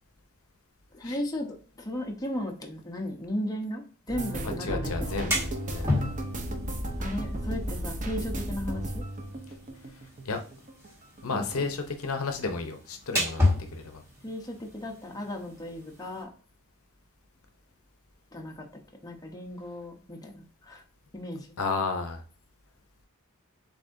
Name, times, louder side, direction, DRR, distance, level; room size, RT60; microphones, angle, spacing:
voice 1, 0.9-5.4 7.0-9.0 11.3-11.7 14.2-16.3 18.3-20.8 21.1-21.5, left 1 dB, 15° left, 1 dB, 0.8 m, -36 dB
sound 1, 4.1-10.9 11.2-12.2 12.5-12.9 13.2-13.4, right 1 dB, 35° right, 0.7 m, -34 dB
voice 2, 4.4-6.1 10.2-10.4 11.2-14.0 21.6-22.2, left 4 dB, 70° left, 6 dB, 0.8 m, -32 dB
sound 2, 5.0-16.2, left 2 dB, 10° right, 1.7 m, -34 dB
7.2 x 2.7 x 2.6 m, 0.40 s
head